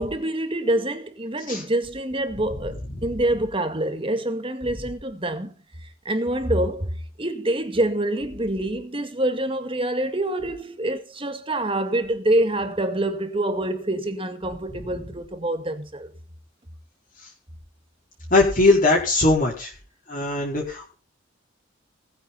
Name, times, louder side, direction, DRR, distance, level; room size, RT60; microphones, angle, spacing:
voice 1, 0.0-5.5 6.1-6.9 7.2-16.1, right 1 dB, 25° right, 2.1 m, -26 dB
voice 2, 18.3-19.7 20.1-20.9, left 2 dB, 45° left, 4.9 m, -20 dB
19.5 x 9.7 x 4.3 m
head